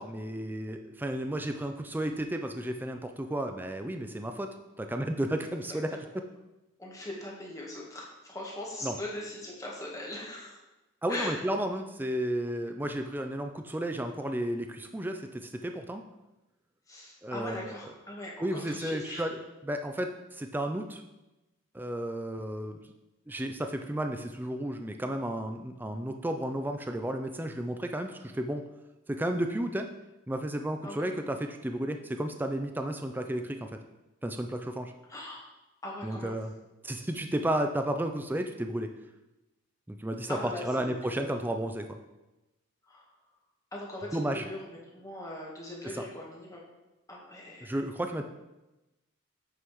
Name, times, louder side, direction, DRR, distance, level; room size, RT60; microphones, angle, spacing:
voice 1, 0.0-6.2 8.8-9.0 11.0-16.0 17.2-17.7 18.4-19.3 19.6-21.0 21.7-22.8 23.3-28.6 29.1-29.9 30.3-33.7 34.2-34.9 36.0-36.5 36.8-38.9 39.9-42.0 44.1-44.5 45.9-46.0 47.6-48.2, right 1 dB, 10° right, 6 dB, 0.4 m, -33 dB
voice 2, 6.8-10.6 11.1-11.4 16.9-19.3 30.8-31.0 35.1-35.4 35.8-36.4 40.3-41.3 42.9-43.0 43.7-46.6 47.1-47.8, left 1 dB, 15° left, -3 dB, 1.3 m, -40 dB
8.2 x 5.6 x 3.1 m, 1.0 s
head